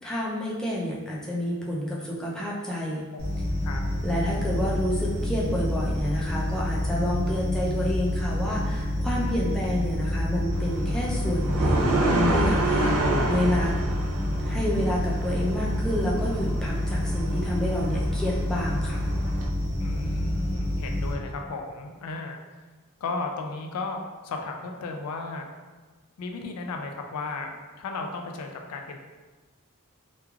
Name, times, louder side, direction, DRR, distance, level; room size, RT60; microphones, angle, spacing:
voice 1, 0.0-3.1 4.0-12.9 13.3-13.7 14.4-19.0, left 1 dB, 5° left, -5 dB, 0.4 m, -29 dB
sound 1, 3.2-21.1, left 1 dB, 45° right, 0.8 m, -28 dB
sound 2, 10.5-19.5, right 1 dB, 75° right, 0.4 m, -29 dB
voice 2, 12.4-13.0 19.8-22.4 23.0-25.5 26.2-29.0, left 3 dB, 80° left, 3 dB, 0.3 m, -35 dB
3.0 x 2.3 x 2.3 m, 1.4 s
head